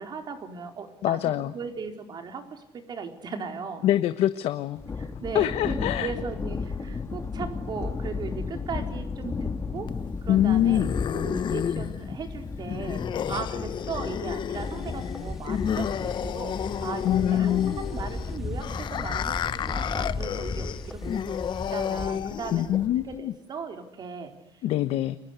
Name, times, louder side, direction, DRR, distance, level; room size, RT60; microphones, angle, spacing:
voice 1, 0.0-3.9 5.0-10.9 11.1-21.2 21.7-24.3, right 5 dB, 45° right, 6 dB, 4.6 m, -38 dB
voice 2, 1.0-1.5 3.8-4.8 5.3-6.1 10.3-10.9 17.0-17.8 22.5-23.3 24.6-25.2, left 12 dB, 80° left, 11 dB, 1.2 m, -24 dB
Thunder, 4.8-23.2, left 4 dB, 25° left, 2.2 m, -35 dB
sound 1, 9.9-22.9, left 8 dB, 50° left, 1.1 m, -32 dB
sound 2, 14.5-22.2, equal, 5° right, 2.7 m, -40 dB
30.0 x 24.0 x 8.2 m, 0.87 s
cardioid pair, 140°, 10 cm